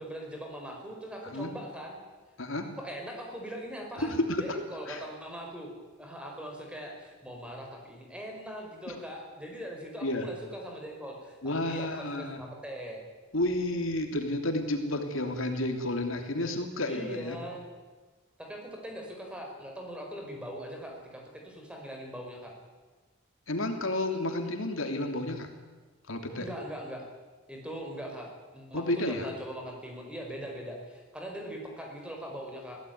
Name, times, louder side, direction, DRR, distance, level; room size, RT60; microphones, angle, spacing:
voice 1, 0.0-2.0 2.7-5.7 6.0-13.0 16.9-17.6 18.4-22.5 26.4-27.0 27.5-32.8, equal, 5° right, 1 dB, 5.0 m, -41 dB
voice 2, 2.4-2.7 4.0-5.0 10.0-10.3 11.4-12.4 13.3-17.4 23.5-25.5 26.1-26.5 28.7-29.3, left 1 dB, 75° left, 5 dB, 3.0 m, -31 dB
24.5 x 17.0 x 9.5 m, 1.3 s
head